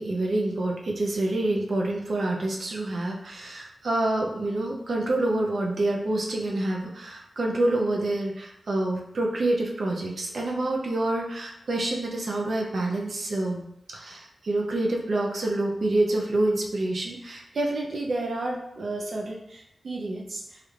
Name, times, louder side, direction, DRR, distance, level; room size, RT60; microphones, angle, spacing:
voice 1, 0.0-13.6 13.9-20.4, right 2 dB, 65° right, -1 dB, 0.5 m, -27 dB
3.1 x 2.4 x 3.1 m, 0.80 s
wide cardioid pair, 80°, 0 cm